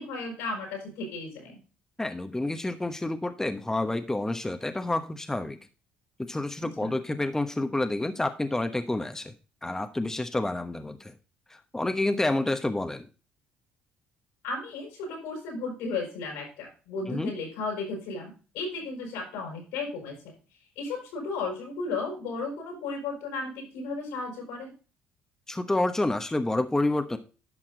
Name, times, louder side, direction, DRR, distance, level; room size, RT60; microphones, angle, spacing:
voice 1, 0.0-1.6 6.8-6.9 14.4-20.3 20.8-24.7, left 3 dB, 90° left, 1 dB, 5.7 m, -34 dB
voice 2, 2.0-5.6 6.2-9.3 9.6-11.1 11.5-13.1 17.1-17.3 25.5-27.2, left 2 dB, 10° left, 7 dB, 1.1 m, -29 dB
11.0 x 5.8 x 3.9 m, 0.34 s
supercardioid pair, 75°, 4 cm